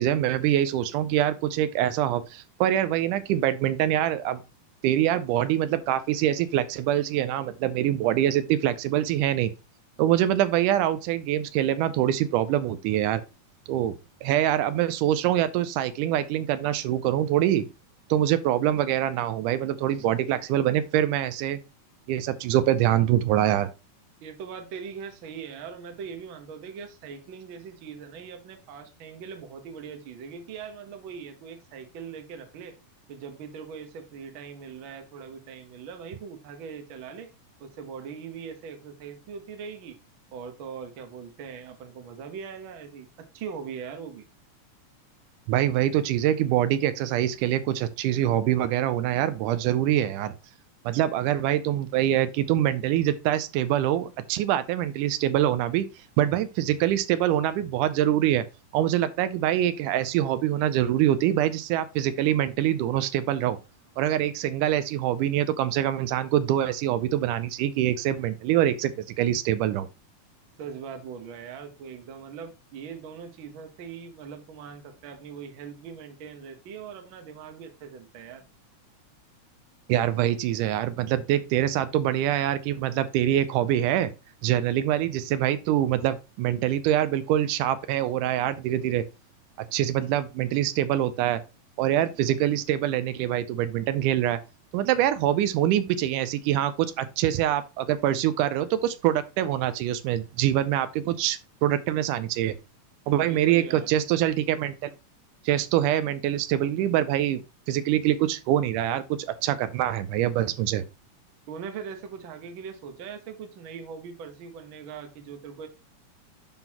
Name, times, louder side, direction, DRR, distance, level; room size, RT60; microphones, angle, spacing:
voice 1, 0.0-4.4 4.8-9.5 10.0-13.2 13.7-14.0 14.2-17.7 18.1-21.6 22.1-23.7 45.5-50.3 50.9-55.9 56.2-58.4 58.7-63.6 64.0-69.9 79.9-84.1 84.4-89.1 89.6-91.4 91.8-94.4 94.7-102.5 103.1-104.9 105.5-107.4 107.7-110.8, right 12 dB, 85° right, 2.1 m, -24 dB
voice 2, 24.2-32.8 33.1-37.3 37.6-40.0 40.3-43.1 43.3-44.3 70.6-78.4 103.2-103.9 111.5-115.7, right 6 dB, 60° right, 1.4 m, -41 dB
11.0 x 4.0 x 2.9 m
omnidirectional pair, 3.6 m